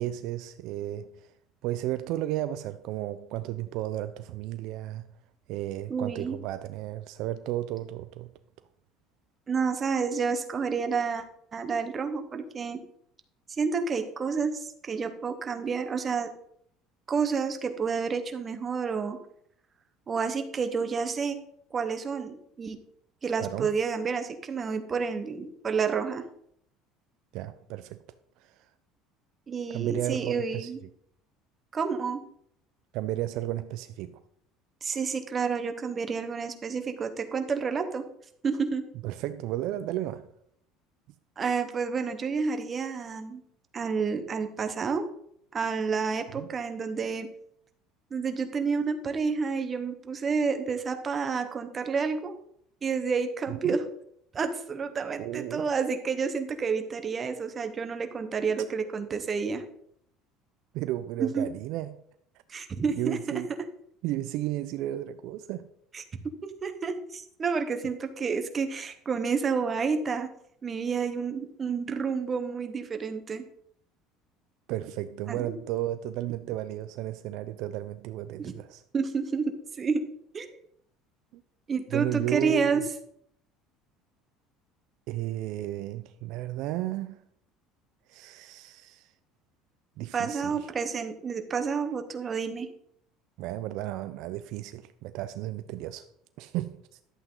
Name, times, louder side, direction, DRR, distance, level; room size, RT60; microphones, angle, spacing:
voice 1, 0.0-1.3 1.6-5.1 5.5-8.3 23.4-23.7 27.3-28.0 28.4-28.7 29.7-30.7 32.9-34.2 39.0-40.3 46.3-46.5 53.5-53.8 55.2-55.7 60.7-62.0 63.0-63.5 64.0-65.7 74.7-78.8 81.3-81.4 81.9-82.9 85.1-87.2 88.1-89.1 90.0-90.7 93.4-96.0 96.4-96.8, right 14 dB, 65° right, 0.5 m, -33 dB
voice 2, 5.9-6.4 9.5-11.2 11.5-12.8 13.6-16.3 17.1-19.2 20.1-21.4 21.7-22.8 23.2-26.2 29.5-30.8 31.7-32.2 34.8-38.0 38.4-38.8 41.4-43.4 43.7-45.1 45.5-47.3 48.1-52.3 52.8-53.8 54.3-59.6 61.2-61.5 62.5-63.2 65.9-66.0 66.4-70.3 70.6-73.4 75.3-75.5 78.4-78.5 78.9-80.0 80.3-80.5 81.7-82.8 90.1-92.7, right 5 dB, 25° right, 1.0 m, -29 dB
11.5 x 8.1 x 3.8 m
cardioid pair, 145°, 0 cm